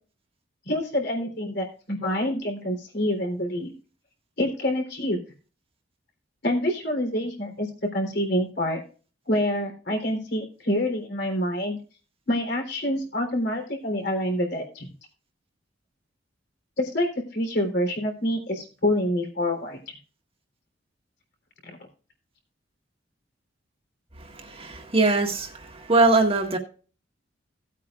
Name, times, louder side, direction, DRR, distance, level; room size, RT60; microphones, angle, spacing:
voice 1, 0.7-3.7 4.4-5.2 6.4-8.8 9.3-11.8 12.3-14.9 16.8-19.8 21.6-21.8, left 1 dB, 65° left, 3 dB, 3.6 m, -27 dB
voice 2, 24.2-26.6, right 3 dB, 30° right, 3 dB, 1.7 m, -22 dB
17.5 x 8.4 x 2.5 m, 0.37 s
head